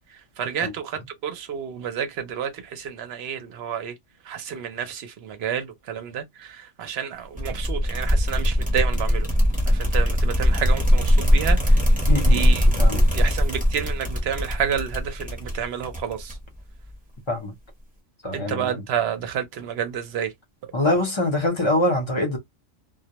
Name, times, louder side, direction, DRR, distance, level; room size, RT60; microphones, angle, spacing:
voice 1, 0.4-3.9 4.3-9.3 9.7-11.8 12.3-12.6 12.9-16.4 18.3-20.3, right 8 dB, 60° right, 0.8 m, -30 dB
sound 1, 7.4-16.6, equal, 10° right, 0.5 m, -20 dB
voice 2, 12.1-12.5 12.8-13.0 17.3-17.5 18.2-18.8 20.7-22.4, left 1 dB, 30° left, 0.6 m, -24 dB
2.2 x 2.1 x 2.8 m
omnidirectional pair, 1.3 m